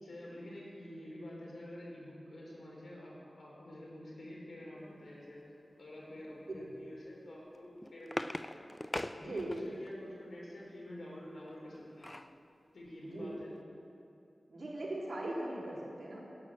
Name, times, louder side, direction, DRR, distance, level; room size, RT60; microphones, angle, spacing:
voice 1, 0.0-5.4 5.8-8.6 9.1-12.1 12.7-13.5, left 1 dB, 80° left, -4 dB, 3.7 m, -48 dB
sound 1, 7.5-9.9 11.5-12.4 12.9-13.0 13.2-13.5, left 1 dB, 20° left, 0.4 m, -41 dB
voice 2, 9.2-9.7 13.0-13.4 14.5-16.2, right 1 dB, 55° right, -6 dB, 3.6 m, -39 dB
11.5 x 9.1 x 7.5 m, 2.7 s
wide cardioid pair, 95°, 0 cm